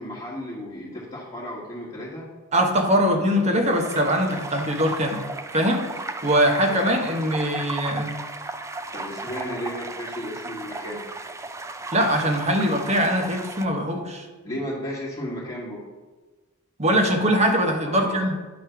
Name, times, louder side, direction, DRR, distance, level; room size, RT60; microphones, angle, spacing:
voice 1, 0.0-2.3 8.9-11.0 14.4-15.8 17.8-18.2, equal, 20° left, -10 dB, 1.5 m, -34 dB
voice 2, 2.5-5.2 5.5-5.8 6.2-8.1 11.9-14.2 16.8-18.4, equal, 30° right, 3 dB, 1.0 m, -22 dB
sound 1, 3.7-13.7, right 2 dB, 15° right, 0.3 m, -35 dB
9.3 x 3.2 x 5.7 m, 1.2 s
head